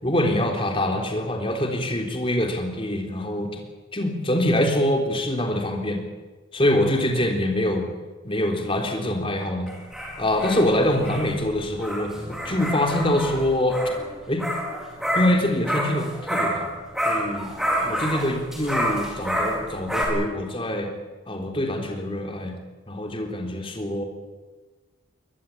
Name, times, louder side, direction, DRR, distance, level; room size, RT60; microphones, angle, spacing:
voice 1, 0.0-3.5 3.9-6.0 6.5-7.9 8.2-9.7 10.2-13.8 14.3-14.5 15.1-16.7 17.1-17.5 17.8-20.9 21.3-22.6 22.9-24.0, left 1 dB, 25° left, 2 dB, 3.7 m, -24 dB
sound 1, 9.7-16.7 16.9-20.0, equal, ahead, 5.1 m, -28 dB
23.0 x 20.5 x 8.7 m, 1.3 s
head